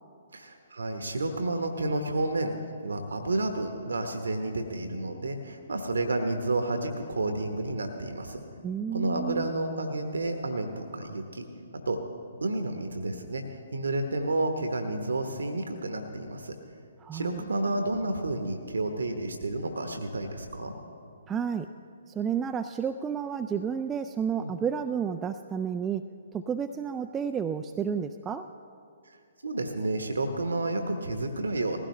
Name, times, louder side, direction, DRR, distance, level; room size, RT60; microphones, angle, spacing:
voice 1, 0.3-2.5 2.8-8.4 8.9-11.5 11.7-12.0 12.4-16.5 17.1-20.7 24.4-24.5 29.1-29.2 29.4-31.8, right 2 dB, 70° right, 5 dB, 1.0 m, -30 dB
voice 2, 8.6-9.5 17.0-17.4 21.3-21.7 22.1-28.5, right 7 dB, 15° right, 6 dB, 0.3 m, -31 dB
19.5 x 16.0 x 3.2 m, 2.4 s
figure-of-eight pair, 125°, 0 cm